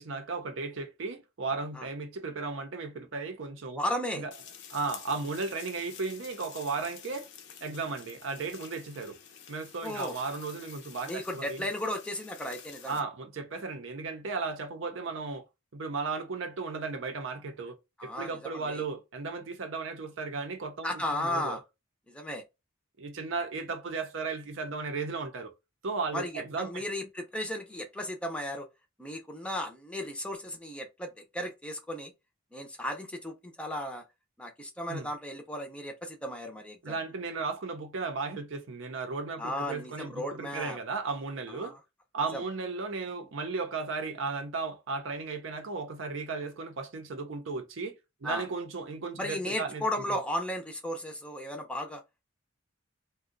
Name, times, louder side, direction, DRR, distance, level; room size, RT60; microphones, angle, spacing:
voice 1, 0.0-3.8 4.1-4.3 4.7-7.3 7.6-9.2 9.5-11.7 12.9-15.5 15.7-21.6 23.0-25.5 25.8-26.8 34.9-35.1 36.8-41.8 42.1-48.0 48.2-49.8, right 4 dB, 65° right, 0.6 m, -35 dB
voice 2, 3.7-4.2 9.8-10.2 11.1-13.0 18.0-18.8 20.8-21.6 22.1-22.4 26.1-28.7 29.0-32.1 32.5-34.0 34.4-37.0 39.4-40.8 41.5-41.8 42.3-42.4 48.2-48.5 49.2-52.0, left 1 dB, 5° left, 0.5 m, -35 dB
sound 1, 4.3-13.0, left 8 dB, 55° left, 0.5 m, -49 dB
2.6 x 2.2 x 3.7 m
head